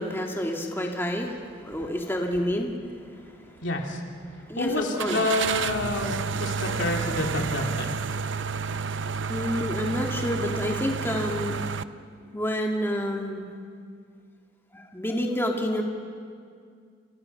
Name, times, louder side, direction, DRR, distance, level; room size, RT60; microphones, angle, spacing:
voice 1, 0.0-2.7 3.1-3.2 4.5-5.2 9.3-11.6 12.3-13.4 14.7-15.8, equal, 15° left, 0 dB, 2.3 m, -28 dB
sound 1, 1.7-1.9 2.4-2.5 5.0-11.8, right 5 dB, 75° right, 0.7 m, -30 dB
voice 2, 3.6-4.0 4.6-7.9, left 2 dB, 75° left, 1 dB, 3.3 m, -28 dB
29.5 x 27.5 x 5.9 m, 2.1 s
head